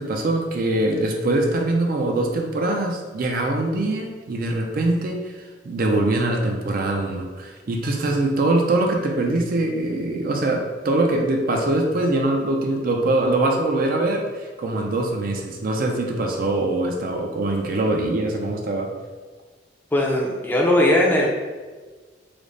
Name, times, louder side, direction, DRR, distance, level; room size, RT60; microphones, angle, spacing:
voice 1, 0.0-5.3 5.6-18.9, right 2 dB, 50° right, 2 dB, 0.4 m, -23 dB
voice 2, 19.9-21.3, left 1 dB, 10° left, -2 dB, 0.4 m, -19 dB
3.3 x 2.0 x 3.8 m, 1.4 s
head